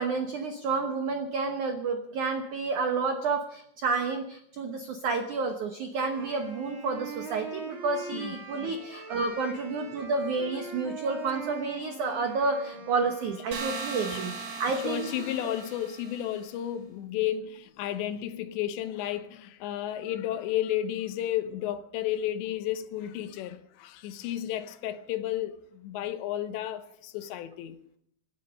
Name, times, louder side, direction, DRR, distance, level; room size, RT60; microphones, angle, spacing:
voice 1, 0.0-15.3, right 4 dB, 85° right, 1.7 m, -30 dB
Wind instrument woodwind instrument, 5.9-13.9, right 4 dB, 35° right, 2.7 m, -42 dB
sound 1, 13.5-16.4, right 4 dB, 65° right, 4.8 m, -38 dB
voice 2, 14.7-27.8, left 12 dB, 80° left, 3.1 m, -32 dB
26.0 x 9.9 x 5.3 m
omnidirectional pair, 5.2 m